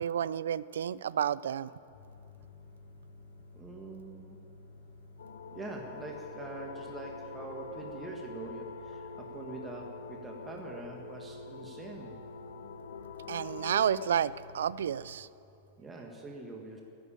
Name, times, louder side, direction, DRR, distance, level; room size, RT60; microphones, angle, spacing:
voice 1, 0.0-1.7 13.3-15.3, right 9 dB, 80° right, 20 dB, 0.3 m, -30 dB
sound 1, 1.9-15.2, left 3 dB, 65° left, 2.2 m, -53 dB
voice 2, 3.5-4.4 5.5-12.2 15.8-16.8, right 3 dB, 15° right, 1 dB, 1.6 m, -44 dB
sound 2, 5.2-14.1, left 5 dB, 85° left, 1.2 m, -45 dB
12.5 x 10.0 x 8.8 m, 2.8 s
hypercardioid pair, 120°, 0 cm